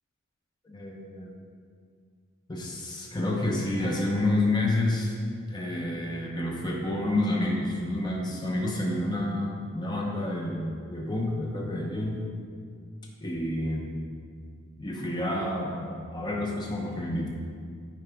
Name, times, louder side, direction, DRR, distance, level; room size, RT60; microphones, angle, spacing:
voice 1, 0.6-1.3 2.5-5.2 5.5-12.2 13.2-13.9 14.8-17.3, left 1 dB, 20° left, -2 dB, 0.7 m, -29 dB
9.2 x 4.9 x 3.4 m, 2.1 s
head